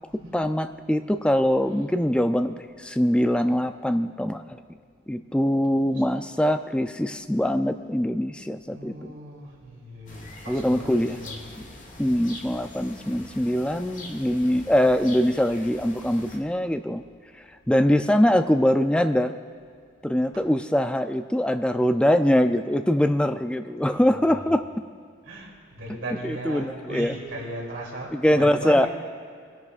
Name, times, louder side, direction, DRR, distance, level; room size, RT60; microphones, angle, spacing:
voice 1, 0.3-4.6 5.1-9.1 10.5-11.2 12.0-17.0 17.7-19.3 20.0-24.7 26.2-27.1 28.1-28.9, equal, 5° left, 9 dB, 0.3 m, -23 dB
voice 2, 8.7-11.7 24.2-24.4 25.2-28.9, right 1 dB, 85° right, -3 dB, 2.9 m, -37 dB
sound 1, 10.1-16.4, left 2 dB, 40° left, 1.4 m, -44 dB
21.5 x 11.0 x 2.5 m, 2.2 s
head